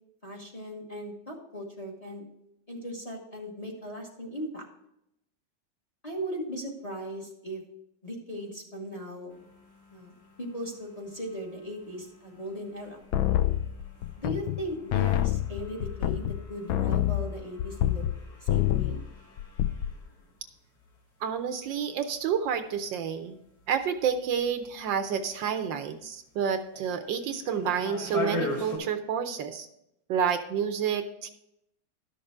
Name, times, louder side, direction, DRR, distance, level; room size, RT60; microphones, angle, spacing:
voice 1, 0.2-2.3 2.7-4.7 6.0-7.6 8.0-9.4 9.9-10.1 10.4-13.0 14.2-18.1 18.4-19.0, equal, 20° left, 1 dB, 1.2 m, -38 dB
sound 1, 9.3-28.8, left 2 dB, 50° left, 3.4 m, -43 dB
sound 2, 13.1-14.6 14.9-18.2 18.5-19.0 19.4-19.9, left 13 dB, 80° left, 1.3 m, -27 dB
voice 2, 21.2-23.4 23.7-29.7 30.1-31.3, right 7 dB, 75° right, 8 dB, 1.3 m, -29 dB
11.5 x 6.6 x 4.4 m, 0.81 s
omnidirectional pair, 2.2 m